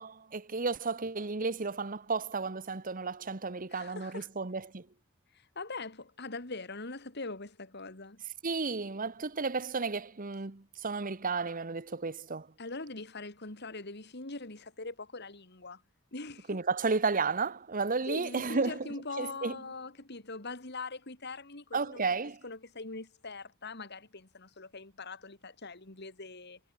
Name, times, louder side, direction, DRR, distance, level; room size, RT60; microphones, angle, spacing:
voice 1, 0.0-4.9 8.4-12.5 16.5-18.9 19.2-19.6 21.7-22.4, right 4 dB, 45° right, 1.1 m, -33 dB
voice 2, 3.7-4.3 5.3-8.2 12.6-15.8 16.1-16.6 18.1-22.1 22.4-26.6, left 3 dB, 55° left, 3.1 m, -42 dB
head